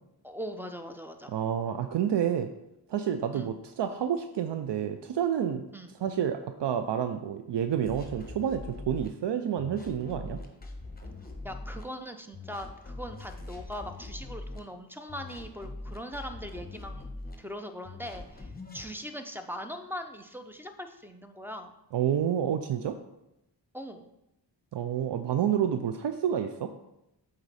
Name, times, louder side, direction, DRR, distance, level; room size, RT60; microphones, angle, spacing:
voice 1, 0.2-1.3 3.3-3.5 5.7-5.9 11.4-17.1 17.4-21.7 23.7-24.1, equal, 5° right, 6 dB, 0.7 m, -40 dB
voice 2, 1.3-2.5 2.9-5.6 6.0-10.4 21.9-23.0 24.7-26.7, right 9 dB, 75° right, 8 dB, 0.5 m, -29 dB
sound 1, 7.9-9.1 9.6-11.8 12.3-14.6 15.1-17.4 17.8-18.9, left 2 dB, 20° left, 1.1 m, -42 dB
7.9 x 4.0 x 4.1 m, 0.86 s
cardioid pair, 55°, 42 cm